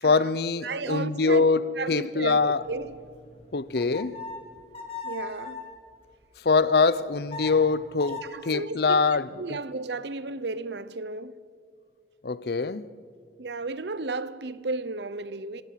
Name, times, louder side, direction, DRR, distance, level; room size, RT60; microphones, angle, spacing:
voice 1, 0.0-2.6 3.5-4.2 6.4-9.6 12.2-12.8, left 4 dB, 60° left, 0.7 m, -24 dB
voice 2, 0.6-3.1 5.0-5.7 8.0-9.0 9.4-11.4 13.4-15.6, right 3 dB, 70° right, 0.9 m, -34 dB
sound 1, 2.4-5.8 7.0-8.3, left 4 dB, 35° left, 3.2 m, -40 dB
25.0 x 17.5 x 7.5 m
head